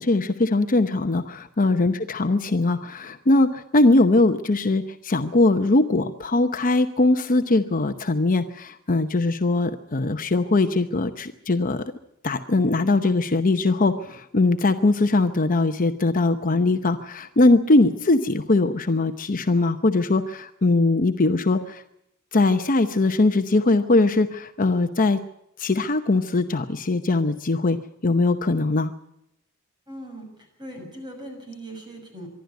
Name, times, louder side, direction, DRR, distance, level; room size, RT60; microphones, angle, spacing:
voice 1, 0.0-11.8 12.2-21.8 22.3-25.2 25.6-27.8 28.0-28.9, left 2 dB, 40° left, 7 dB, 0.8 m, -21 dB
voice 2, 29.9-30.3 30.6-32.3, right 1 dB, 20° right, 3 dB, 6.4 m, -39 dB
25.0 x 12.0 x 9.2 m, 0.81 s
head